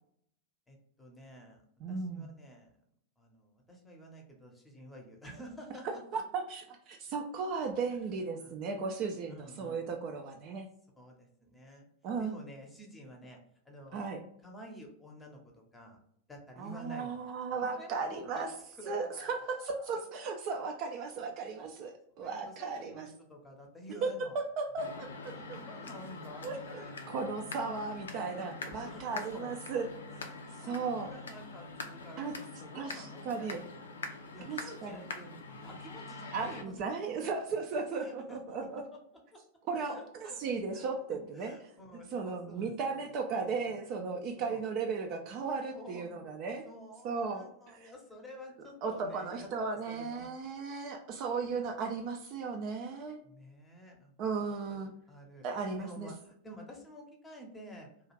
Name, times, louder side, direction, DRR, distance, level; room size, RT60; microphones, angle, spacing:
voice 1, 0.7-1.6 1.9-2.7 3.2-5.9 7.9-8.0 8.4-8.6 9.3-9.8 11.0-11.9 12.2-13.4 13.6-14.1 14.4-16.0 16.3-17.2 17.5-18.5 18.8-20.0 22.2-24.4 25.0-27.3 28.4-29.5 30.3-33.6 33.9-37.2 37.9-39.0 39.3-39.4 39.7-40.4 40.7-43.7 44.4-44.6 45.7-46.1 46.7-49.5 49.9-50.3 53.2-58.1, equal, 10° left, 1 dB, 0.8 m, -50 dB
voice 2, 1.8-2.3 5.8-10.7 12.0-12.3 13.9-14.2 16.6-18.5 18.9-23.1 24.6-24.9 26.4-30.3 30.6-31.1 32.2-32.3 32.7-33.6 34.5-35.0 36.3-38.8 39.7-41.6 42.1-46.7 47.0-47.9 48.8-53.2 54.2-54.9 55.4-56.1, right 4 dB, 40° right, 3 dB, 0.4 m, -36 dB
sound 1, 24.8-36.6, left 3 dB, 70° left, 0.4 m, -44 dB
2.4 x 2.4 x 3.1 m, 0.70 s
figure-of-eight pair, 90°, 0 cm